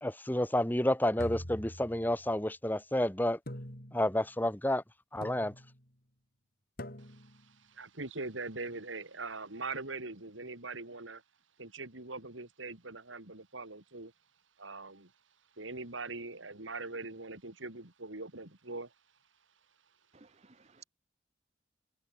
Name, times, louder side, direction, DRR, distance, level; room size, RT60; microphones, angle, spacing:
voice 1, 0.0-3.4 3.9-4.8 5.1-5.5, left 1 dB, 10° left, 1.6 m, -30 dB
sound 1, 1.2-2.4 3.5-4.3 5.2-5.8 6.8-7.4, equal, 50° left, 7.7 m, -44 dB
voice 2, 7.0-11.2 11.6-14.1 14.6-15.1 15.6-18.9, right 3 dB, 85° right, 3.6 m, -42 dB
voice 3, 20.1-20.8, right 5 dB, 35° right, 1.2 m, -58 dB
head